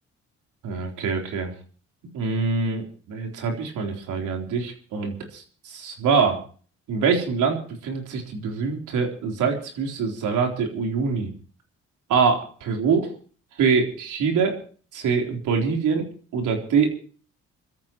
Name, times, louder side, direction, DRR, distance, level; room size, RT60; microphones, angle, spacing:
voice 1, 0.6-1.5 2.1-6.4 6.9-7.6 7.8-11.3 12.1-13.1 13.6-14.6 14.9-16.1 16.3-16.9, right 5 dB, 85° right, 3 dB, 3.9 m, -24 dB
27.0 x 14.0 x 3.1 m, 0.42 s
cardioid pair, 90°, 30 cm